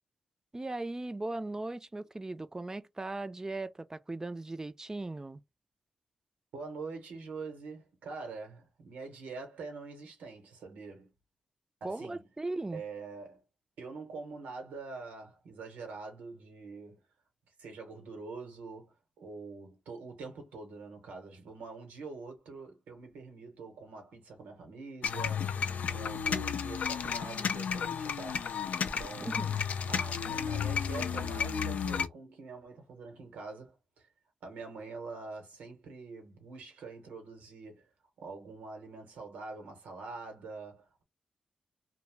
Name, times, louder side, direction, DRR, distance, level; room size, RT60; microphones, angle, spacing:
voice 1, 0.5-5.4 11.8-12.8 29.2-29.6, right 2 dB, 25° right, 0.4 m, -38 dB
voice 2, 6.5-11.1 11.8-12.2 12.7-13.4 13.8-17.0 17.6-25.6 25.9-28.5 29.0-29.4 29.9-34.1 34.4-37.9 38.2-41.0, right 4 dB, 90° right, 0.8 m, -45 dB
sound 1, 25.0-32.1, left 7 dB, 70° left, 0.3 m, -32 dB
2.3 x 2.0 x 3.2 m
supercardioid pair, 45°, 3 cm